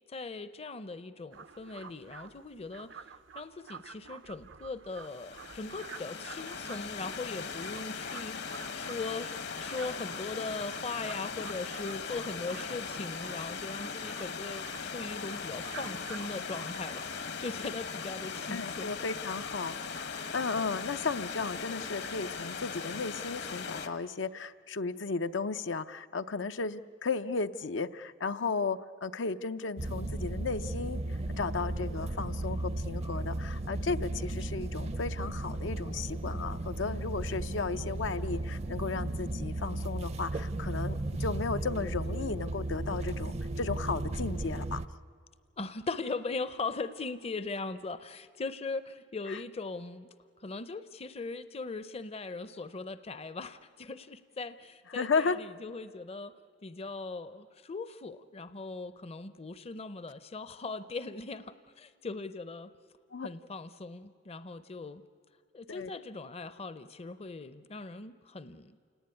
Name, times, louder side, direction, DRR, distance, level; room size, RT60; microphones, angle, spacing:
voice 1, 0.1-3.1 3.3-19.0 45.6-50.1 50.4-56.3 56.6-62.7 63.2-65.0 65.5-68.8, left 3 dB, 35° left, 14 dB, 0.6 m, -40 dB
sound 1, 1.3-17.0, right 6 dB, 85° right, 0.8 m, -50 dB
Stream / Liquid, 5.0-23.9, left 5 dB, 65° left, 1.2 m, -39 dB
voice 2, 18.5-19.8 20.3-31.0 31.4-44.8 49.3-49.4 54.9-55.4 63.1-63.3 65.7-65.9, left 4 dB, 85° left, 10 dB, 0.7 m, -34 dB
sound 2, 29.8-44.9, right 2 dB, 35° right, 0.6 m, -35 dB
28.5 x 18.5 x 9.7 m, 2.2 s
head